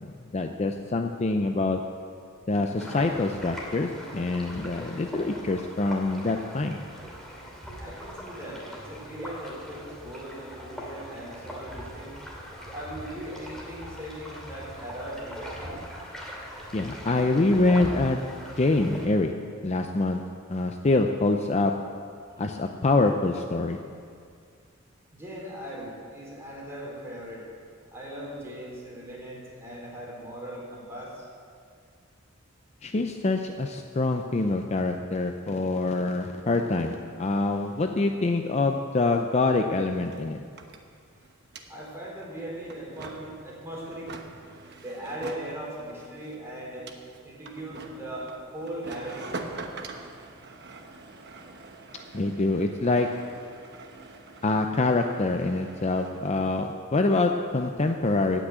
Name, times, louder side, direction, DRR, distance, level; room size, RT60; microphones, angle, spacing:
voice 1, 0.0-1.8 2.5-6.8 16.7-18.2 18.6-19.3 19.6-20.2 20.5-21.7 22.4-23.8 32.8-40.4 52.1-53.1 54.4-58.5, left 2 dB, 30° left, 5 dB, 0.5 m, -25 dB
sound 1, 2.8-19.1, equal, ahead, 2.5 m, -41 dB
voice 2, 7.7-12.2 12.7-15.8 25.1-27.5 27.9-31.3 41.1-41.2 41.7-44.1 44.8-46.9 47.2-49.6, right 1 dB, 15° right, -5 dB, 4.0 m, -39 dB
sound 2, 39.4-39.5 39.7-56.3, right 3 dB, 55° right, 1.1 m, -45 dB
16.0 x 6.2 x 8.8 m, 2.2 s
head